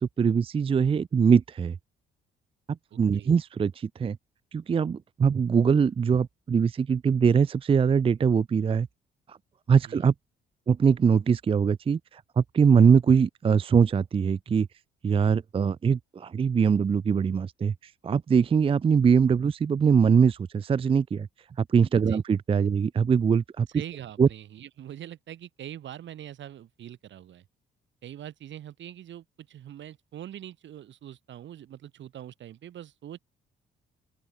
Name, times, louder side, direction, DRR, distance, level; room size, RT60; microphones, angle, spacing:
voice 1, 0.0-1.8 2.7-4.2 4.5-8.9 9.3-9.4 9.7-10.1 10.7-14.7 15.0-21.3 21.6-23.7 24.2-24.3, right 6 dB, 30° right, 0.4 m, -22 dB
voice 2, 2.9-3.3 9.8-10.1 22.1-22.2 23.7-27.4 28.0-33.2, right 11 dB, 70° right, 2.2 m, -43 dB
open air
cardioid pair, 90°, 20 cm